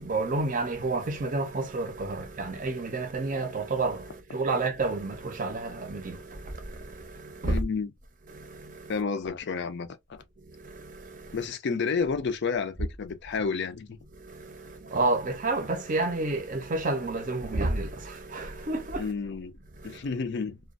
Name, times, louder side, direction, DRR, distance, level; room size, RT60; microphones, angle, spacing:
voice 1, 0.0-7.6 8.3-9.0 10.4-11.4 14.1-19.1 19.8-20.0, right 3 dB, 40° right, 0.6 m, -30 dB
voice 2, 7.4-7.9 8.9-10.2 11.3-14.0 19.0-19.6 19.8-20.6, left 5 dB, 55° left, 0.4 m, -30 dB
2.4 x 2.2 x 2.4 m
head